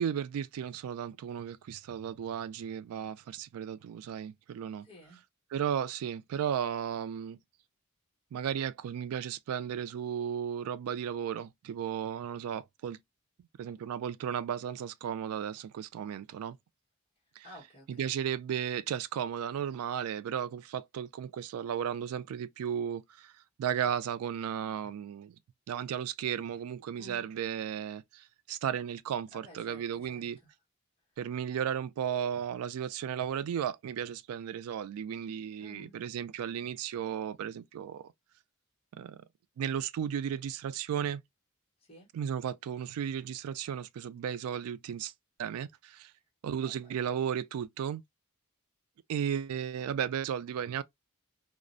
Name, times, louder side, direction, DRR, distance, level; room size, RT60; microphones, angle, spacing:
voice 1, 0.0-4.9 5.5-7.4 8.3-13.0 13.6-16.6 17.4-17.5 17.9-23.3 23.6-25.4 25.7-30.4 31.2-38.1 39.0-39.2 39.6-41.2 42.1-45.1 45.4-46.1 46.4-48.0 49.1-50.8, right 8 dB, 85° right, 0.3 m, -34 dB
voice 2, 4.8-5.2 17.4-18.1 27.0-27.3 29.3-30.5 35.6-36.0 41.8-42.1 46.6-47.0, left 1 dB, 25° left, 1.1 m, -53 dB
2.4 x 2.1 x 2.4 m
head